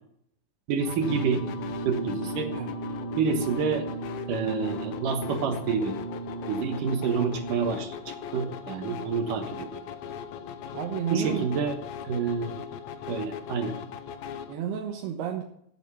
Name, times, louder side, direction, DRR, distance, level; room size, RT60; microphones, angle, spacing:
voice 1, 0.7-1.4 1.9-2.5 3.2-3.9 4.3-6.0 6.5-9.8 11.1-11.7 12.0-12.6 13.1-13.8, right 5 dB, 65° right, 5 dB, 2.6 m, -28 dB
sound 1, 0.8-14.5, left 8 dB, 85° left, 1.5 m, -39 dB
Brass instrument, 0.9-8.0, right 4 dB, 30° right, 3.2 m, -37 dB
voice 2, 10.7-11.5 14.5-15.4, right 8 dB, 80° right, 1 dB, 3.2 m, -31 dB
15.5 x 8.1 x 5.5 m, 0.70 s
omnidirectional pair, 4.5 m